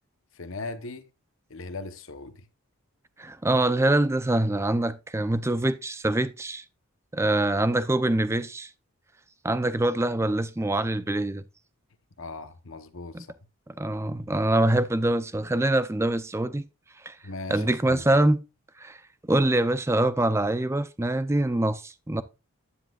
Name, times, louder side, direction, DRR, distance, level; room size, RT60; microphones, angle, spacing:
voice 1, 0.3-1.1 1.5-2.5 12.2-13.3 17.2-18.0, left 3 dB, 65° left, 0.9 m, -38 dB
voice 2, 3.2-6.6 7.1-8.7 9.4-11.4 13.1-13.3 13.8-16.7 17.0-17.2 17.5-18.4 18.8-19.0 19.2-22.2, right 1 dB, 10° right, 0.4 m, -24 dB
10.0 x 9.9 x 2.3 m
head